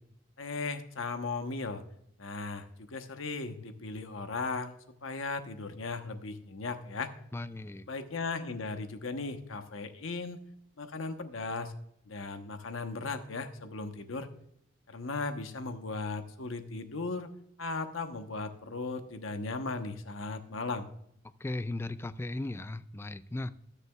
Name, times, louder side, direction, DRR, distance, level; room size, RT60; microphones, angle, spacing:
voice 1, 0.4-1.8 2.2-7.1 7.9-10.4 10.8-11.7 12.1-14.3 14.9-17.3 17.6-20.9, left 3 dB, 85° left, 8 dB, 1.0 m, -37 dB
voice 2, 7.3-7.9 21.4-23.5, left 2 dB, 10° left, 14 dB, 0.3 m, -37 dB
19.5 x 6.7 x 2.3 m, 0.72 s
head